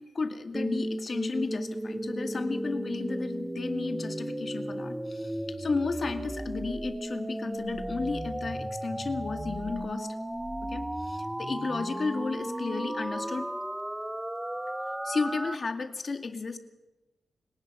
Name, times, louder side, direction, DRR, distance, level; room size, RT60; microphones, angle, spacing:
voice 1, 0.0-10.1 10.6-13.5 15.0-16.6, left 4 dB, 40° left, 6 dB, 2.2 m, -33 dB
sound 1, 0.5-15.6, right 1 dB, 10° right, 1.0 m, -35 dB
29.0 x 18.0 x 5.7 m, 1.0 s
wide cardioid pair, 140°, 0 cm